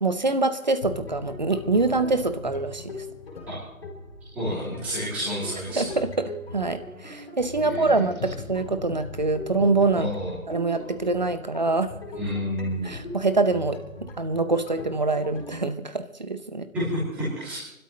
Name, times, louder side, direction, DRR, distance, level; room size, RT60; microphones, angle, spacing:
voice 1, 0.0-2.9 5.8-10.1 10.5-11.9 12.8-13.8 14.2-16.7, right 3 dB, 30° right, 11 dB, 0.8 m, -25 dB
sound 1, 0.8-15.6, left 3 dB, 45° left, 4.1 m, -40 dB
voice 2, 4.3-5.9 7.6-8.1 10.0-10.3 12.1-12.9 16.7-17.6, equal, 5° right, -11 dB, 3.0 m, -30 dB
29.0 x 12.5 x 3.2 m, 0.82 s
hypercardioid pair, 175°, 42 cm